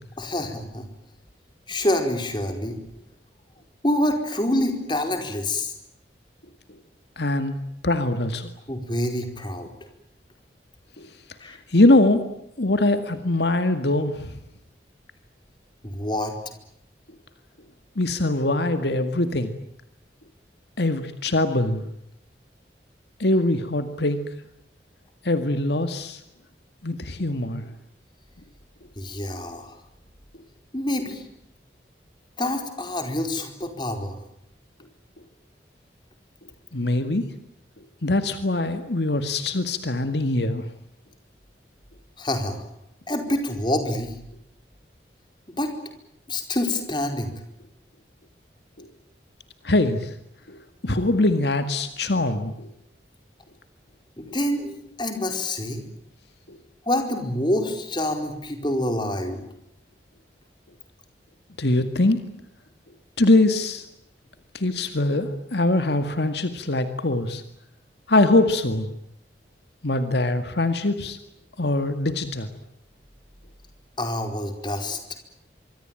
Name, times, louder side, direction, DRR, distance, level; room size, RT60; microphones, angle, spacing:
voice 1, 0.2-0.9 1.7-2.8 3.8-5.7 8.7-9.7 11.4-11.6 15.8-16.4 29.0-29.7 30.7-31.2 32.4-34.2 42.2-42.6 43.1-44.1 45.6-45.7 46.3-47.3 54.2-55.8 56.9-59.4 74.0-75.0, left 1 dB, 25° left, 5 dB, 4.5 m, -26 dB
voice 2, 7.2-7.6 7.8-8.5 11.0-11.1 11.5-12.3 12.6-14.3 18.0-19.5 20.8-21.8 23.2-24.2 25.2-26.2 26.8-27.7 36.7-37.2 38.0-40.6 48.8-48.9 49.6-50.1 50.5-52.7 54.3-54.4 56.5-56.6 61.6-62.2 63.2-63.9 64.5-67.4 68.1-68.9 69.8-71.2 71.6-72.5, left 2 dB, 70° left, 9 dB, 2.0 m, -22 dB
26.0 x 23.5 x 9.0 m, 0.77 s
head